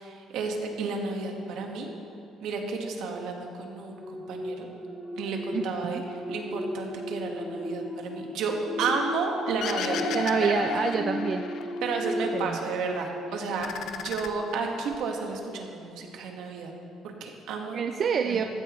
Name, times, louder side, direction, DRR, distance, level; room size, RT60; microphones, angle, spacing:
voice 1, 0.0-1.9 2.4-4.7 5.2-6.0 6.3-8.5 8.8-10.5 11.8-13.7 13.9-16.7 17.0-17.8 18.2-18.4, right 4 dB, 70° right, 2 dB, 1.6 m, -32 dB
sound 1, 3.9-13.8 14.3-14.5, left 1 dB, 5° right, 3.1 m, -36 dB
voice 2, 5.5-6.0 10.1-11.4 12.3-12.6 17.7-18.4, right 6 dB, 40° right, 6 dB, 0.4 m, -27 dB
sound 2, 9.6-11.9 12.3-13.1 13.4-15.0, left 7 dB, 60° left, 0.8 m, -34 dB
15.0 x 13.5 x 3.2 m, 2.6 s
cardioid pair, 160°, 0 cm